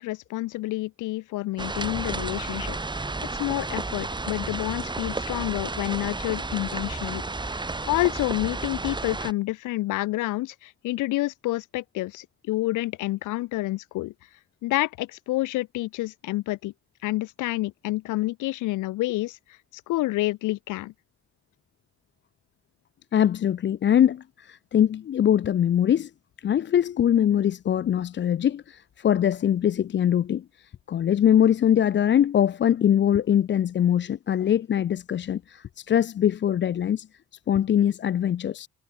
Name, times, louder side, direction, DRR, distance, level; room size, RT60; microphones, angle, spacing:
voice 1, 0.0-14.1 14.6-16.7 17.0-19.4 19.9-20.9, left 18 dB, 90° left, 1.0 m, -29 dB
sound 1, 1.6-9.3, right 3 dB, 15° right, 1.4 m, -32 dB
voice 2, 23.1-26.1 26.4-37.1 37.5-38.7, left 10 dB, 40° left, 0.5 m, -22 dB
cardioid pair, 90°, 30 cm